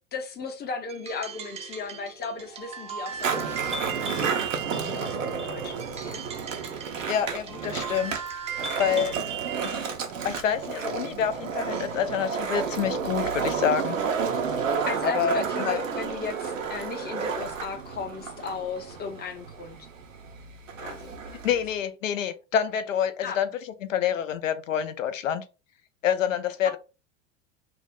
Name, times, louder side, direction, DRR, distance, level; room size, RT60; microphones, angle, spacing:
voice 1, 0.1-6.2 14.8-19.9 20.8-21.1 23.2-23.4 26.6-26.8, left 4 dB, 25° left, 0.6 m, -36 dB
sound 1, 0.9-9.9, right 6 dB, 20° right, 0.4 m, -37 dB
Skateboard, 3.1-21.7, right 6 dB, 90° right, 0.6 m, -31 dB
voice 2, 7.1-8.2 8.8-9.2 9.6-9.9 10.2-14.0 15.1-15.8 21.4-23.5 23.9-25.4 26.0-26.8, left 8 dB, 85° left, 0.5 m, -27 dB
2.4 x 2.0 x 3.4 m
hypercardioid pair, 85°, 38 cm